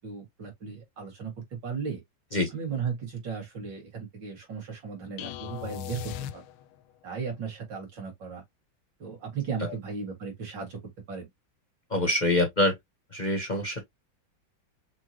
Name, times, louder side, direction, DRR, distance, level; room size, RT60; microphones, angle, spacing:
voice 1, 0.0-2.0 2.5-6.4 7.0-8.4 9.0-10.8 11.1-11.3, right 6 dB, 65° right, 2.9 m, -36 dB
sound 1, 5.2-6.9, left 11 dB, 90° left, 1.4 m, -38 dB
voice 2, 11.9-12.7 13.1-13.8, left 1 dB, 30° left, 0.9 m, -25 dB
6.2 x 2.3 x 3.0 m
omnidirectional pair, 2.2 m